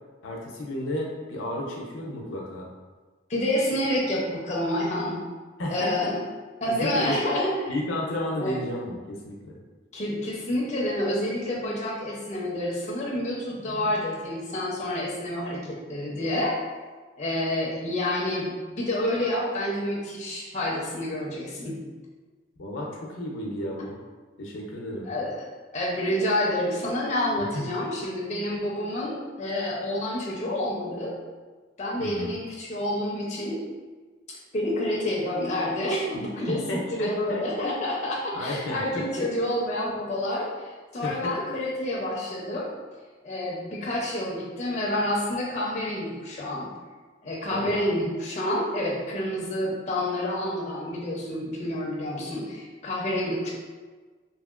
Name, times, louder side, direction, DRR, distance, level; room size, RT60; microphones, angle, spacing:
voice 1, 0.2-2.7 5.6-6.1 6.7-7.2 7.7-9.5 22.6-24.0 24.4-25.1 27.4-27.5 32.0-32.3 36.5-37.7 38.3-39.3 41.0-41.3 47.5-47.8, left 1 dB, 80° left, -1 dB, 0.5 m, -32 dB
voice 2, 3.3-5.2 5.7-6.2 6.6-7.7 8.4-8.6 9.9-16.6 17.2-21.8 25.0-25.5 25.7-31.1 31.8-33.6 34.3-42.7 43.2-46.7 47.2-53.5, left 1 dB, 35° left, -5 dB, 0.5 m, -28 dB
2.8 x 2.8 x 2.3 m, 1.4 s
head